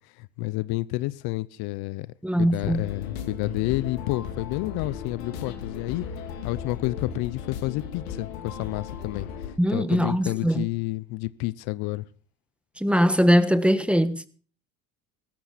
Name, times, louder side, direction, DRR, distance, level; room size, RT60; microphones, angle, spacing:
voice 1, 0.2-6.0 6.4-9.3 9.7-12.0, left 20 dB, 70° left, 0.7 m, -30 dB
voice 2, 2.2-2.8 9.6-10.6 12.8-14.3, equal, 5° right, 1.4 m, -21 dB
sound 1, 2.6-9.5, left 7 dB, 85° left, 2.6 m, -36 dB
16.5 x 13.5 x 4.1 m
supercardioid pair, 80°, 39 cm